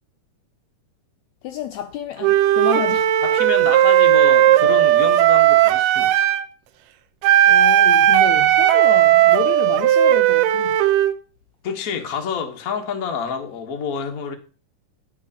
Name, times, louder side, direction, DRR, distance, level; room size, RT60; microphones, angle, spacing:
voice 1, 1.4-3.1 4.6-4.8 7.5-10.8, left 13 dB, 80° left, 1.7 m, -30 dB
Wind instrument woodwind instrument, 2.2-6.5 7.2-11.1, right 12 dB, 90° right, 2.3 m, -15 dB
voice 2, 3.2-6.3 11.6-14.3, left 6 dB, 55° left, 0.9 m, -28 dB
11.5 x 5.7 x 5.0 m
omnidirectional pair, 3.7 m